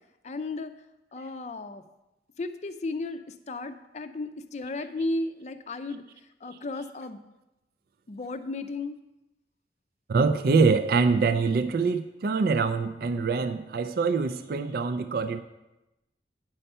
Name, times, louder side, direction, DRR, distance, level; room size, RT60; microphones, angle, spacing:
voice 1, 0.2-0.7 1.1-1.8 2.4-6.0 6.4-7.2 8.1-9.0, left 2 dB, 40° left, 10 dB, 0.5 m, -34 dB
voice 2, 10.1-15.4, right 4 dB, 55° right, 9 dB, 0.4 m, -24 dB
8.9 x 5.5 x 5.4 m, 0.97 s
head